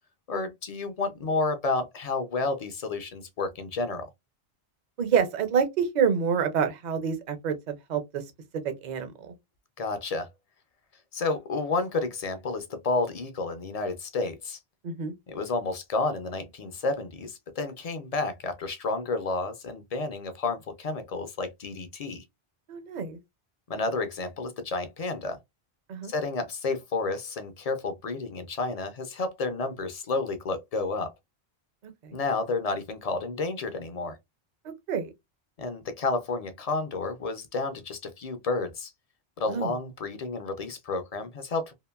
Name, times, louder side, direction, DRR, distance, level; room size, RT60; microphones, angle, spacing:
voice 1, 0.3-4.1 9.8-10.3 11.1-14.6 15.3-22.2 23.7-25.4 26.1-31.1 32.1-34.2 35.6-38.9 39.4-41.7, left 3 dB, 50° left, 0.5 m, -31 dB
voice 2, 5.0-8.2 8.6-9.3 14.8-15.1 22.7-23.2 25.9-26.1 32.0-32.2 34.9-35.1 39.5-39.7, right 7 dB, 50° right, 0.6 m, -27 dB
2.9 x 2.5 x 2.2 m
omnidirectional pair, 1.1 m